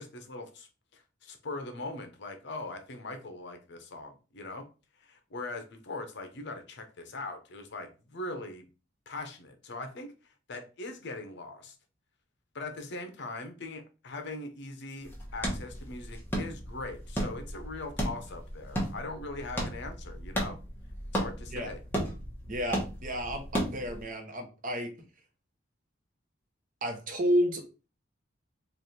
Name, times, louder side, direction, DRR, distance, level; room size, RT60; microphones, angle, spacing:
voice 1, 0.0-4.6 5.0-8.7 9.1-10.1 10.5-11.7 12.5-20.6 21.1-21.8, left 2 dB, 65° left, 0.7 m, -41 dB
sound 1, 15.0-24.0, equal, 10° left, 1.0 m, -35 dB
voice 2, 22.5-24.9 26.8-27.6, equal, 45° right, 0.9 m, -31 dB
3.3 x 2.4 x 4.1 m
head